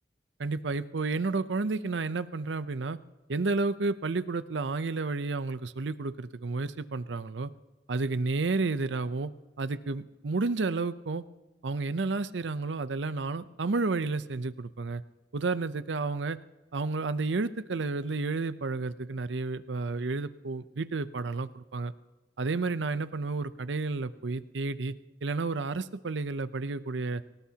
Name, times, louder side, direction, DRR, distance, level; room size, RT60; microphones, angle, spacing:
voice 1, 0.4-3.0 3.3-7.5 7.9-9.3 9.6-11.2 11.6-15.0 15.3-16.4 16.7-21.9 22.4-24.9 25.2-27.2, right 3 dB, 80° right, 13 dB, 0.7 m, -31 dB
23.5 x 19.0 x 2.9 m, 1.1 s
head